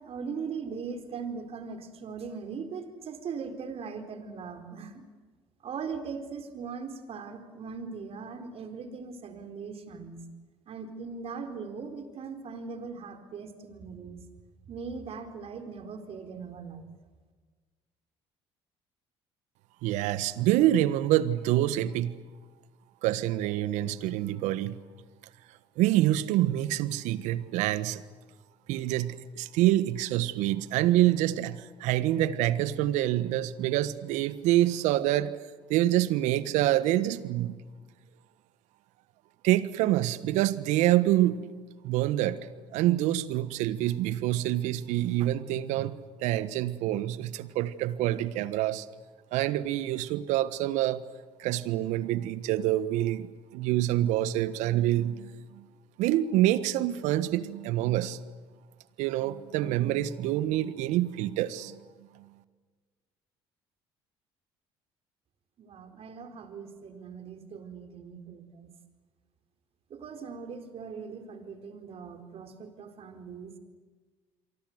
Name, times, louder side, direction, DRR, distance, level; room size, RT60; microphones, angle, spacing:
voice 1, 0.0-4.9 5.6-10.2 10.7-14.2 14.7-16.9 65.6-68.7 69.9-73.6, right 5 dB, 50° right, 6 dB, 4.4 m, -40 dB
voice 2, 19.8-22.2 23.0-24.8 25.8-28.0 28.7-35.3 35.7-37.6 39.4-41.4 41.8-42.4 42.7-48.9 49.3-51.0 51.4-55.6 56.0-58.2 59.0-61.8 62.2-62.3, right 14 dB, 70° right, 15 dB, 1.4 m, -26 dB
29.0 x 23.5 x 8.1 m, 1.4 s
hypercardioid pair, 65°, 12 cm